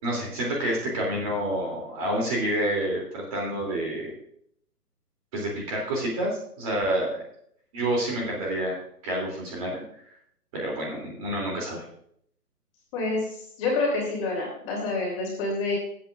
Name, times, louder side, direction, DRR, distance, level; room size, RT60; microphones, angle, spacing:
voice 1, 0.0-4.1 5.3-7.2 7.7-8.8 9.0-9.8 10.5-11.8, right 1 dB, 20° right, -3 dB, 3.1 m, -28 dB
voice 2, 12.9-13.3 13.6-15.7, left 3 dB, 20° left, -3 dB, 3.2 m, -27 dB
18.5 x 8.6 x 2.6 m, 0.68 s
hypercardioid pair, 165°, 48 cm